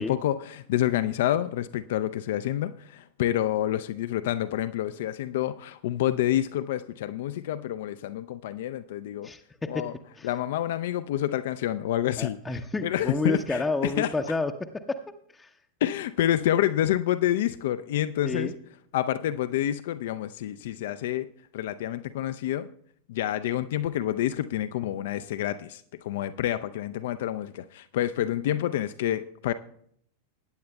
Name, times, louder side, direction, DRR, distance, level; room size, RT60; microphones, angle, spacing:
voice 1, 0.0-9.3 9.7-9.9 10.2-14.1 15.8-18.5 18.9-21.3 21.5-22.7 23.1-29.5, left 12 dB, 55° left, 12 dB, 0.4 m, -28 dB
voice 2, 9.2-9.7 10.1-10.3 12.2-15.0 15.3-15.5 18.2-18.5, left 3 dB, 10° left, 3 dB, 0.6 m, -30 dB
20.5 x 9.3 x 2.2 m, 0.66 s
figure-of-eight pair, 90°, 0 cm